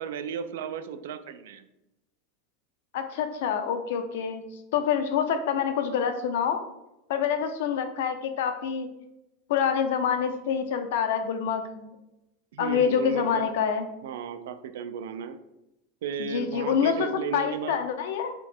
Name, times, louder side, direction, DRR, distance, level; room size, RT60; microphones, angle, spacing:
voice 1, 0.0-1.6 12.5-13.5 14.0-15.4 16.0-17.8, right 6 dB, 80° right, 10 dB, 0.4 m, -34 dB
voice 2, 2.9-4.4 4.7-6.6 7.1-8.9 9.5-11.9 12.6-13.9 16.2-18.3, left 7 dB, 65° left, 7 dB, 0.5 m, -26 dB
4.3 x 2.1 x 4.3 m, 0.89 s
supercardioid pair, 170°, 0 cm